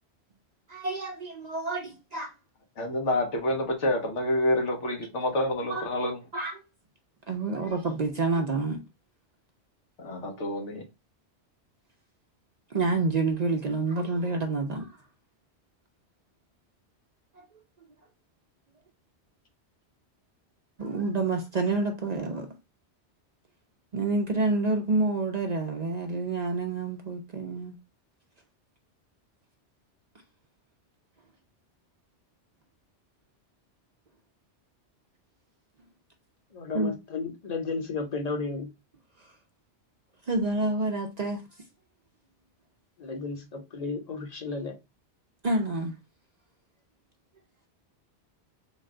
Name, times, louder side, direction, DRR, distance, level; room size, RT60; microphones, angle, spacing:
voice 1, 0.7-2.3 5.7-5.9 6.3-6.5 7.3-8.8 12.7-14.9 17.4-17.5 20.8-22.5 23.9-27.8 36.7-36.9 40.3-41.4 45.4-45.9, right 3 dB, 50° right, 0.6 m, -28 dB
voice 2, 2.8-6.2 10.0-10.8, left 1 dB, 90° left, 1.4 m, -28 dB
voice 3, 36.5-38.7 43.0-44.8, left 4 dB, 40° left, 0.8 m, -33 dB
3.8 x 2.2 x 3.6 m
omnidirectional pair, 1.2 m